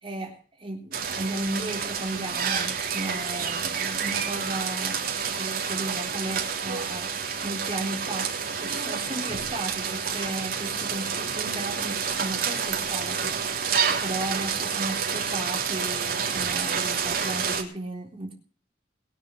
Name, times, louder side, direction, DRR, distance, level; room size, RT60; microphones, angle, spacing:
voice 1, 0.0-5.1 5.4-7.1 7.4-18.3, right 2 dB, 30° right, 1 dB, 3.6 m, -35 dB
sound 1, 0.9-17.6, right 6 dB, 55° right, 3.5 m, -29 dB
22.0 x 7.4 x 6.5 m, 0.41 s
head